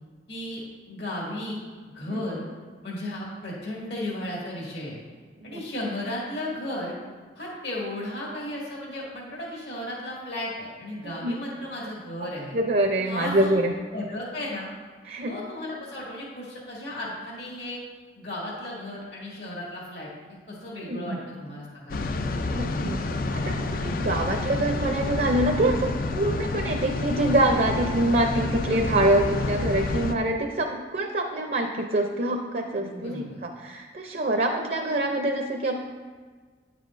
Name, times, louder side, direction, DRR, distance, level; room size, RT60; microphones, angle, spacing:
voice 1, 0.3-0.6 0.9-1.7 1.9-2.4 2.8-5.0 5.4-6.9 7.4-12.6 13.1-13.6 13.9-14.7 15.3-17.8 18.2-22.3 32.8-33.4, left 1 dB, 70° left, -4 dB, 2.0 m, -35 dB
voice 2, 5.4-5.9 11.0-11.4 12.5-13.7 15.1-15.4 20.8-21.2 22.5-35.8, right 1 dB, 50° right, 3 dB, 0.5 m, -25 dB
sound 1, 21.9-30.1, left 3 dB, 50° left, 0.4 m, -29 dB
9.5 x 7.5 x 2.6 m, 1.5 s
head